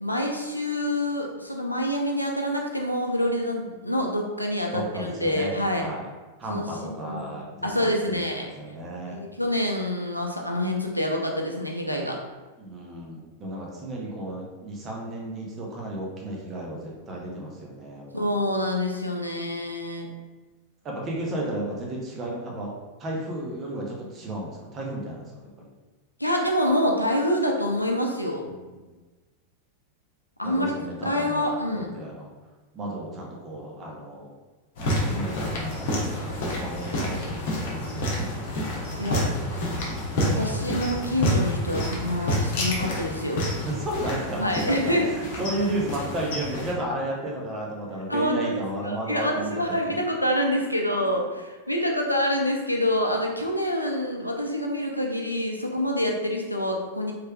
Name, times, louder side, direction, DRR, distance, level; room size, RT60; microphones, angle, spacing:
voice 1, 0.0-5.9 6.5-7.4 7.6-8.5 9.1-12.2 18.1-20.1 26.2-28.4 30.4-30.7 31.0-31.9 39.0-39.2 40.2-43.4 44.4-45.1 48.1-57.1, left 1 dB, 90° left, 1 dB, 0.4 m, -26 dB
voice 2, 4.7-5.5 5.8-6.0 6.4-8.2 8.6-9.2 12.6-18.3 20.8-22.7 23.0-25.3 25.6-25.7 28.8-28.9 30.4-31.5 31.7-32.3 32.7-34.3 34.8-38.4 39.1-39.4 43.6-45.1 45.4-50.0, right 1 dB, 25° right, -3 dB, 0.8 m, -33 dB
sound 1, 34.8-46.7, left 1 dB, 50° left, 0.8 m, -29 dB
3.2 x 3.2 x 2.2 m, 1.2 s
figure-of-eight pair, 90°, 0 cm